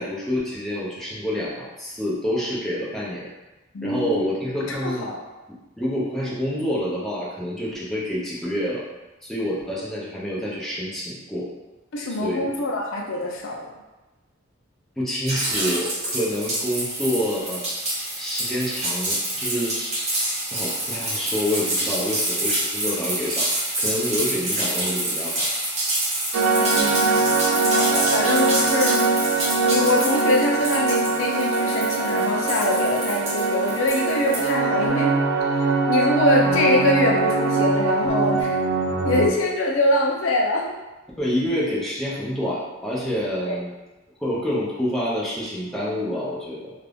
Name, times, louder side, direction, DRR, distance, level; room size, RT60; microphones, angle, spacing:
voice 1, 0.0-3.3 3.8-5.1 5.8-8.8 9.2-11.5 12.2-12.5 15.0-17.6 18.1-20.2 20.5-23.5 23.8-25.5 41.2-43.7 44.2-46.7, equal, ahead, -7 dB, 0.6 m, -27 dB
voice 2, 3.7-4.3 4.7-5.2 11.9-13.7 26.6-27.3 27.7-29.0 29.6-35.1 35.5-38.6 39.0-40.8 43.5-43.6, left 2 dB, 85° left, 0 dB, 0.5 m, -24 dB
sound 1, 15.3-34.5, right 1 dB, 35° right, 1.0 m, -27 dB
sound 2, 26.3-39.3, right 3 dB, 85° right, 0.4 m, -22 dB
2.6 x 2.3 x 3.4 m, 1.1 s
head